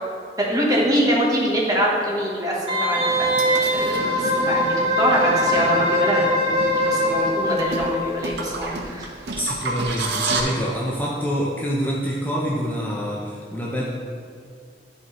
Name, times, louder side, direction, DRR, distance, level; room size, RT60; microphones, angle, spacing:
voice 1, 0.4-3.3 3.7-6.6 6.8-9.1, equal, 20° right, -3 dB, 1.1 m, -24 dB
Wind instrument woodwind instrument, 2.7-8.2 8.5-8.6, equal, 35° right, 1.5 m, -22 dB
sound 1, 3.1-10.4, right 3 dB, 70° right, 0.8 m, -31 dB
voice 2, 9.3-13.8, equal, 10° left, -5 dB, 0.6 m, -26 dB
11.0 x 4.6 x 3.0 m, 2.3 s
head